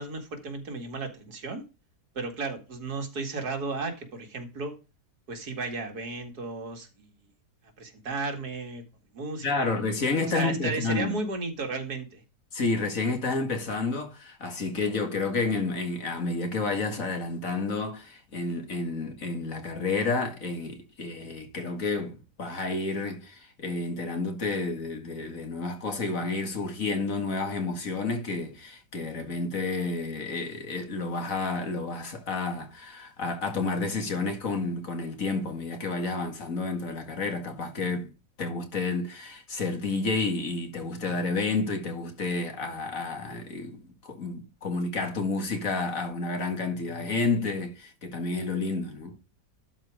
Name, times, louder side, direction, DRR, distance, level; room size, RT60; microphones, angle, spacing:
voice 1, 0.0-1.6 2.1-4.8 5.3-7.1 7.8-8.8 9.1-9.7 10.2-12.2, right 3 dB, 70° right, 2.5 m, -34 dB
voice 2, 9.4-11.1 12.5-38.1 38.4-49.2, left 3 dB, 55° left, 2.3 m, -30 dB
12.0 x 4.5 x 4.9 m
omnidirectional pair, 1.7 m